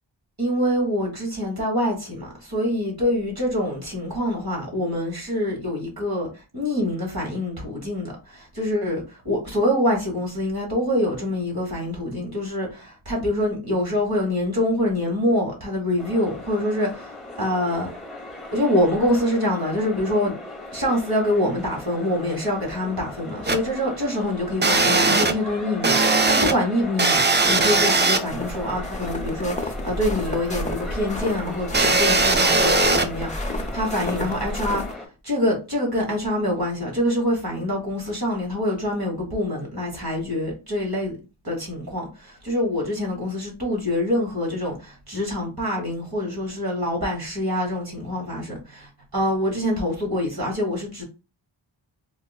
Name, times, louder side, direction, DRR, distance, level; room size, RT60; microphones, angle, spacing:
voice 1, 0.4-17.9 18.5-20.3 20.7-41.1 41.4-51.0, left 1 dB, 50° right, 1.4 m, -25 dB
sound 1, 16.0-35.1, left 2 dB, ahead, 1.1 m, -37 dB
sound 2, 23.5-23.6 24.6-25.3 25.8-26.5 27.0-28.2 31.7-33.1, right 3 dB, 25° right, 0.4 m, -19 dB
sound 3, 28.2-34.9, left 1 dB, 15° left, 0.7 m, -31 dB
4.3 x 2.1 x 2.3 m
wide cardioid pair, 45°, 48 cm